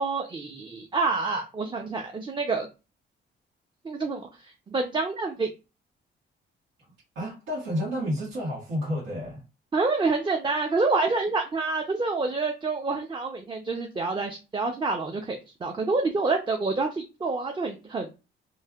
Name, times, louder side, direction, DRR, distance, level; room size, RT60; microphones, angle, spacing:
voice 1, 0.0-2.7 3.8-4.3 4.7-5.5 9.7-18.2, right 3 dB, 25° right, 0.5 m, -27 dB
voice 2, 7.1-9.4, equal, 85° right, 1.5 m, -30 dB
3.1 x 2.5 x 2.3 m
cardioid pair, 90°, 20 cm